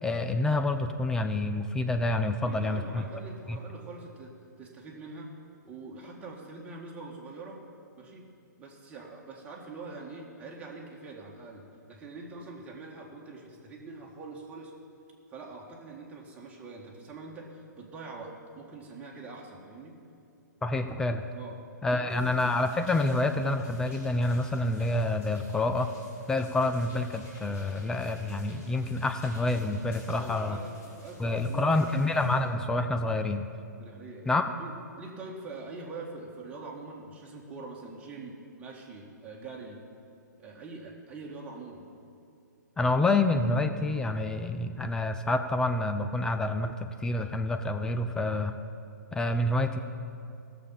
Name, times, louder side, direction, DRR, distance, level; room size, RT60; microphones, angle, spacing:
voice 1, 0.0-3.0 3.5-3.6 20.6-21.3 21.8-25.9 26.3-30.6 31.2-33.5 34.3-34.5 42.8-48.5 49.1-49.8, left 2 dB, 5° left, 7 dB, 0.4 m, -28 dB
voice 2, 2.4-4.3 4.6-5.3 5.6-7.6 7.9-8.3 8.6-14.7 15.3-19.9 21.3-21.6 21.9-22.3 30.2-32.0 33.8-34.3 34.6-39.8 40.4-41.9, right 3 dB, 15° right, -2 dB, 1.7 m, -44 dB
sound 1, 22.1-32.4, left 1 dB, 25° left, 2.9 m, -53 dB
17.0 x 7.0 x 5.6 m, 2.4 s
figure-of-eight pair, 120°, 10 cm